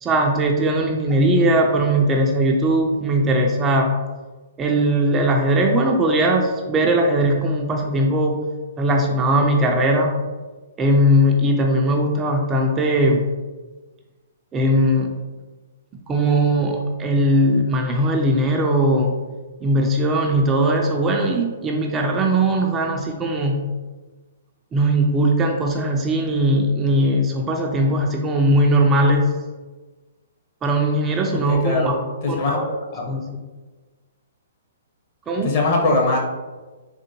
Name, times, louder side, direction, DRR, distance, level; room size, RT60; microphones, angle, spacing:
voice 1, 0.0-4.0 4.6-8.4 8.8-10.2 10.8-13.3 14.5-15.1 16.1-19.2 19.6-23.6 24.7-29.3 30.6-32.0 32.3-32.7 33.1-33.2 35.3-35.5, right 1 dB, 20° right, 1 dB, 0.3 m, -19 dB
voice 2, 31.5-31.9 32.2-32.6 32.9-33.0 35.4-36.2, left 3 dB, 40° left, -1 dB, 0.8 m, -20 dB
3.5 x 2.1 x 2.9 m, 1.3 s
figure-of-eight pair, 120°, 0 cm